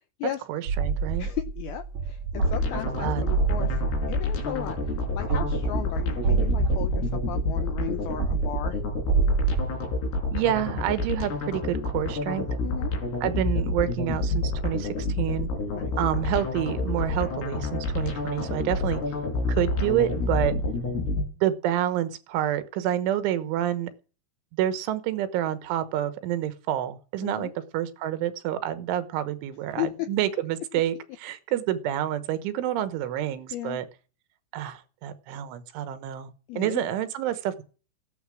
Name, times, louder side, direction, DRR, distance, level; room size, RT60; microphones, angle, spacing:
voice 1, 0.5-1.3 2.9-3.2 10.3-12.5 13.2-15.5 16.0-19.0 19.5-20.6 21.4-23.9 24.5-33.9 34.5-36.3 36.6-37.6, right 12 dB, 85° right, 11 dB, 3.6 m, -28 dB
sound 1, 0.7-9.7, right 5 dB, 50° right, 2.2 m, -28 dB
voice 2, 1.2-8.8 12.6-12.9 15.7-15.9 20.2-20.4 27.2-27.5 29.8-29.9 33.5-33.8 36.5-36.9, left 12 dB, 80° left, 9 dB, 2.2 m, -35 dB
sound 2, 2.3-21.2, left 2 dB, 65° left, 5.8 m, -29 dB
15.5 x 12.0 x 6.3 m, 0.37 s
omnidirectional pair, 5.4 m